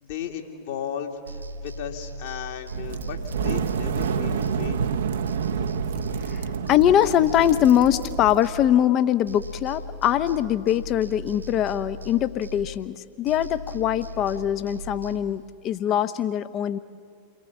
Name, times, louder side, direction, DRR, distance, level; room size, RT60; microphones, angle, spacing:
voice 1, 0.0-1.4 1.6-4.8, left 8 dB, 55° left, 3 dB, 2.4 m, -35 dB
sound 1, 1.2-5.0 5.3-9.0 9.3-13.0 13.3-15.2, right 1 dB, 80° right, 2.4 m, -38 dB
sound 2, 2.7-8.4, right 7 dB, 65° right, 1.0 m, -28 dB
voice 2, 6.7-16.8, left 11 dB, 35° left, 13 dB, 0.9 m, -22 dB
29.0 x 22.5 x 7.2 m, 2.3 s
figure-of-eight pair, 90°, 0 cm